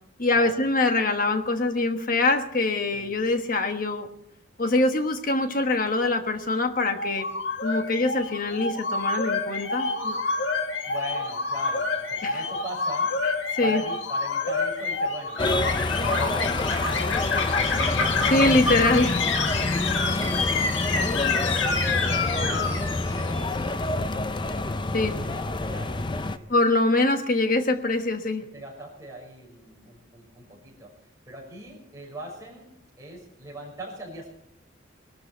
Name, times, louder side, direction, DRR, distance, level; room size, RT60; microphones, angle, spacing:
voice 1, 0.2-4.1 4.6-7.3 7.6-10.2 12.2-12.4 13.5-13.8 18.3-19.2 24.9-25.2 26.5-28.4, left 2 dB, 45° left, 6 dB, 1.3 m, -24 dB
sound 1, 6.9-23.5, left 4 dB, 70° left, 1.7 m, -28 dB
voice 2, 10.8-13.1 13.6-18.0 19.3-26.4 28.4-30.9 31.3-32.7 33.0-34.3, right 1 dB, 15° right, -2 dB, 5.7 m, -41 dB
sound 2, 15.4-26.4, left 2 dB, 25° left, 0.5 m, -27 dB
20.5 x 13.0 x 4.5 m, 0.79 s
head